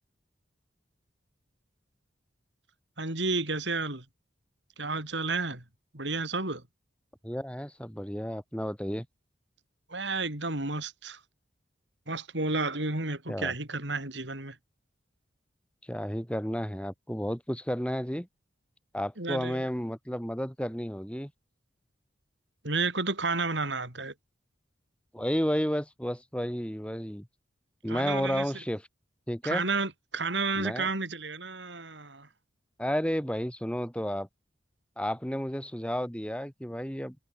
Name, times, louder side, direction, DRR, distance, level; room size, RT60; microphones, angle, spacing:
voice 1, 3.0-4.0 4.8-5.6 5.9-6.6 9.9-11.2 12.1-14.6 19.2-19.7 22.6-24.1 27.9-28.5 29.4-32.3, right 3 dB, 70° right, 5.6 m, -31 dB
voice 2, 7.2-9.1 13.3-13.5 15.9-18.3 18.9-21.3 25.1-27.3 27.8-28.8 29.3-29.6 30.5-30.9 32.8-34.3 35.0-37.2, equal, 5° left, 6.4 m, -32 dB
head